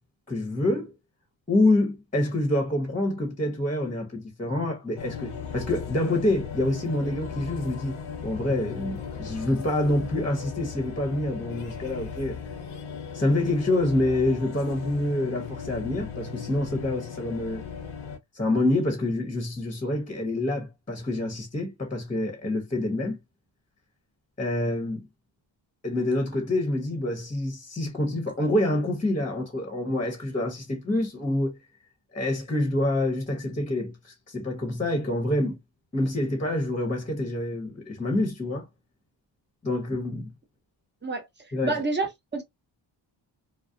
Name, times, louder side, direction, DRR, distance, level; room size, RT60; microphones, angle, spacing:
voice 1, 0.3-0.9 1.5-12.4 13.1-17.6 18.3-23.2 24.4-25.1 25.8-31.5 32.1-35.6 35.9-38.7 39.6-40.3 41.5-41.7, left 1 dB, 15° left, 0.9 m, -27 dB
sound 1, 5.0-18.2, left 6 dB, 75° left, 0.8 m, -37 dB
voice 2, 41.6-42.4, right 3 dB, 20° right, 0.9 m, -28 dB
2.4 x 2.1 x 2.6 m
cardioid pair, 60°, 49 cm